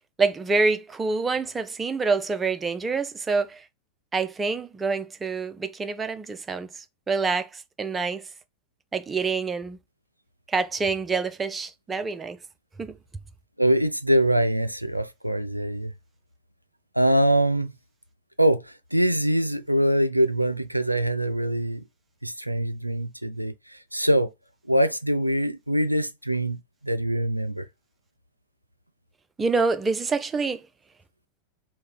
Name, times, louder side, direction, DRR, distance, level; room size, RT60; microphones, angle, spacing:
voice 1, 0.2-3.6 4.1-8.2 8.9-9.8 10.5-12.4 12.8-13.0 29.4-30.6, right 4 dB, 15° right, 0.5 m, -26 dB
voice 2, 13.6-15.9 16.9-17.7 18.4-21.8 22.2-24.3 24.7-27.7, right 1 dB, 90° right, 0.3 m, -23 dB
3.7 x 2.2 x 4.4 m
figure-of-eight pair, 90°, 0 cm